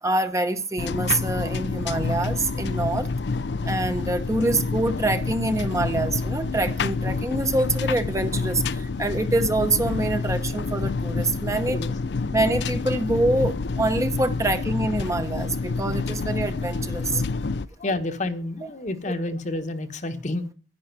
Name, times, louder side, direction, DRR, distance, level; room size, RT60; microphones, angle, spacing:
voice 1, 0.0-3.1 3.7-11.8 12.3-17.2, right 2 dB, 15° right, 0.9 m, -25 dB
sound 1, 0.8-17.7, left 3 dB, 65° left, 0.5 m, -28 dB
voice 2, 17.8-20.4, left 2 dB, 45° left, 1.2 m, -30 dB
10.5 x 9.9 x 6.0 m
head